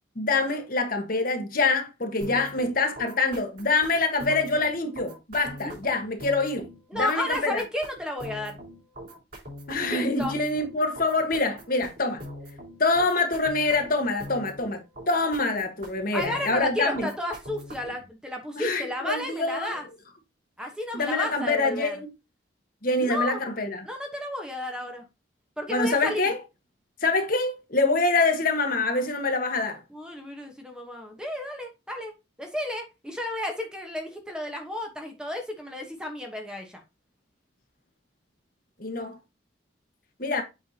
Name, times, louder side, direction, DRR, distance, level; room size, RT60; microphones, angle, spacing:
voice 1, 0.1-7.6 9.7-12.2 12.8-14.8 15.1-17.1 18.6-19.8 20.9-22.1 22.8-23.9 25.7-26.4 27.0-29.8 38.8-39.2 40.2-40.4, left 3 dB, 45° left, 1.3 m, -25 dB
sound 1, 2.2-18.1, equal, 50° right, 4.2 m, -43 dB
voice 2, 6.9-8.6 9.9-10.3 16.1-19.9 20.6-21.9 23.0-23.4 23.8-25.0 25.6-26.3 29.9-32.1 32.4-36.8, left 1 dB, 5° right, 1.1 m, -32 dB
8.1 x 5.7 x 2.8 m
head